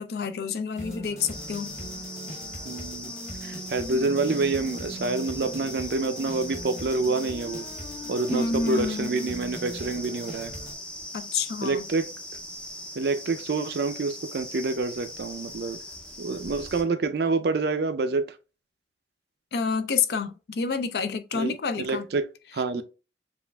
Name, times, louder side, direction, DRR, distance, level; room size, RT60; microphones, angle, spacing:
voice 1, 0.0-1.8 8.3-9.1 11.1-11.8 19.5-22.0, left 5 dB, 60° left, 0.4 m, -28 dB
sound 1, 0.7-10.7, equal, 40° left, 1.3 m, -39 dB
sound 2, 1.3-16.8, left 1 dB, 5° left, 0.5 m, -40 dB
voice 2, 2.6-3.1 3.4-7.6 8.1-10.5 11.6-12.1 13.0-15.8 16.2-18.4 21.3-22.2 22.5-22.8, right 3 dB, 60° right, 0.4 m, -27 dB
7.1 x 2.4 x 2.2 m
head